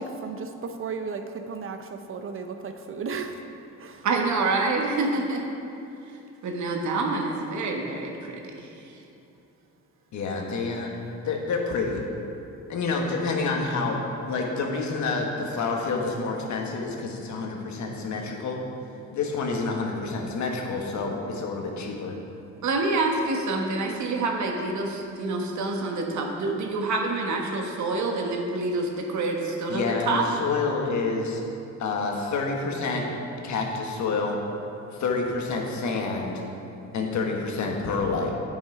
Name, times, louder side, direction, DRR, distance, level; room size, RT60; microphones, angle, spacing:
voice 1, 0.0-3.5 3.8-4.1, right 4 dB, 45° right, 7 dB, 0.7 m, -34 dB
voice 2, 4.0-5.4 6.4-9.0 22.6-30.3, right 3 dB, 70° right, 1 dB, 1.2 m, -27 dB
voice 3, 10.1-11.0 11.2-12.1 12.7-18.6 19.1-22.2 29.7-31.4 31.8-33.1 33.4-34.4 35.0-36.4 36.9-38.3, left 4 dB, 70° left, 1 dB, 1.3 m, -28 dB
8.9 x 5.6 x 4.8 m, 2.7 s
cardioid pair, 90°, 30 cm